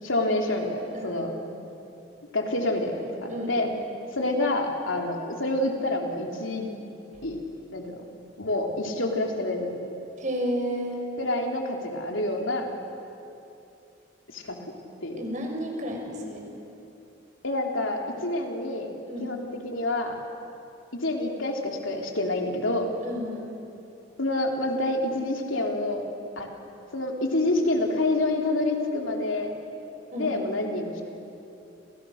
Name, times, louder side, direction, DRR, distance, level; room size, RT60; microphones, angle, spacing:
voice 1, 0.0-1.3 2.3-3.7 4.1-6.7 7.2-7.4 7.7-8.0 8.4-9.8 11.2-12.7 14.3-14.6 15.0-15.2 17.4-18.9 19.2-20.2 21.0-22.9 24.2-26.0 26.4-26.5 26.9-29.5 30.1-31.0, left 2 dB, 90° left, 1 dB, 3.5 m, -27 dB
voice 2, 0.9-1.3 3.3-3.9 10.2-11.0 15.2-16.5 19.1-19.3 23.0-23.5 30.1-30.3, equal, 40° right, 1 dB, 5.7 m, -32 dB
30.0 x 28.5 x 6.6 m, 2.8 s
head